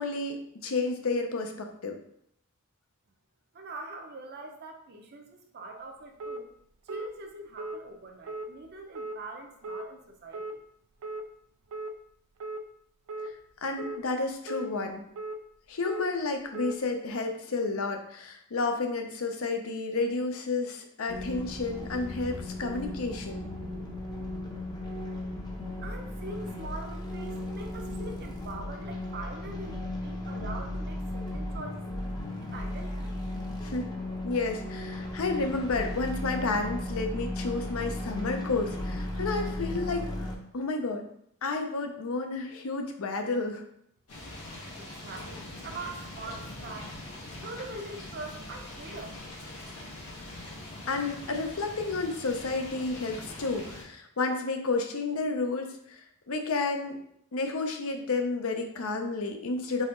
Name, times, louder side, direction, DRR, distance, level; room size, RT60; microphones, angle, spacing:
voice 1, 0.0-2.0 13.6-15.0 15.7-23.5 33.6-33.9 34.2-41.0 41.4-43.6 50.9-57.0 57.3-59.8, left 3 dB, 65° left, 5 dB, 0.6 m, -31 dB
voice 2, 3.5-6.5 6.8-10.6 25.8-33.2 44.7-46.9 47.4-49.2, right 2 dB, 45° right, 3 dB, 0.6 m, -43 dB
sound 1, 6.2-6.4 6.9-7.1 7.6-7.8 8.2-8.5 9.0-9.2 9.6-9.9 10.3-10.5 11.0-11.2 11.7-11.9 12.4-12.6 13.1-13.3 13.8-14.0 14.5-14.7 15.2-15.4 15.8-16.1 16.5-16.8, right 2 dB, 90° right, 0.4 m, -37 dB
sound 2, 21.1-40.4, left 1 dB, 20° left, 0.6 m, -36 dB
sound 3, 44.1-53.8, left 1 dB, 90° left, 1.8 m, -43 dB
4.1 x 2.9 x 3.7 m, 0.71 s
head